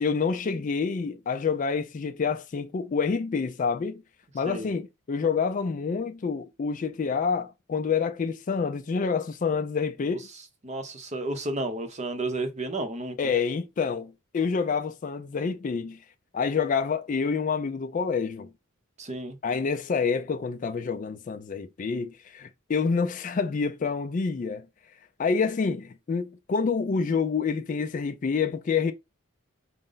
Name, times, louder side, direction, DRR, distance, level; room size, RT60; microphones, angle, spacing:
voice 1, 0.0-4.0 4.3-10.3 13.2-16.0 16.3-18.5 19.4-24.7 25.2-28.9, left 5 dB, 40° left, 0.3 m, -27 dB
voice 2, 10.6-13.2 19.0-19.4, right 2 dB, 35° right, 0.7 m, -32 dB
4.9 x 2.1 x 3.8 m
head